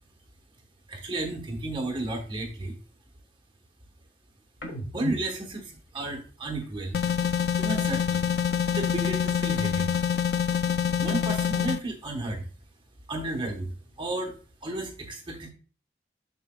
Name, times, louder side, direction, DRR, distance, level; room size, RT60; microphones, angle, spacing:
voice 1, 0.9-2.7 4.9-7.0 7.6-8.3 8.7-9.9 11.0-12.5 13.1-14.3 14.6-15.5, right 2 dB, 25° right, 2 dB, 1.1 m, -33 dB
sound 1, 4.6-8.1 8.5-10.3 10.6-12.4 12.8-14.6, equal, 80° left, 1.5 m, -45 dB
sound 2, 6.9-11.8, left 8 dB, 60° left, 0.3 m, -26 dB
6.9 x 6.7 x 2.3 m, 0.38 s
head